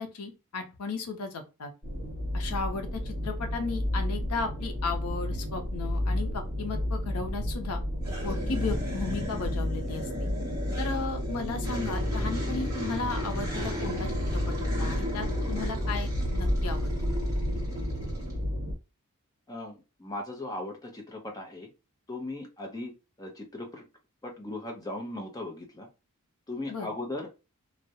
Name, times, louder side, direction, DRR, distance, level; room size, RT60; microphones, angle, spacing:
voice 1, 0.0-1.7 2.3-7.8 8.2-10.3 10.8-17.1 26.7-26.9, left 4 dB, 90° left, 5 dB, 0.6 m, -35 dB
sound 1, 1.8-18.7, left 1 dB, 45° right, 1.0 m, -31 dB
sound 2, 8.0-18.3, left 1 dB, 15° right, 0.8 m, -36 dB
voice 2, 19.5-21.7 22.1-22.9 23.2-23.8 24.2-25.9 26.5-27.3, left 2 dB, 15° left, 1 dB, 0.5 m, -38 dB
2.3 x 2.0 x 2.7 m, 0.29 s
head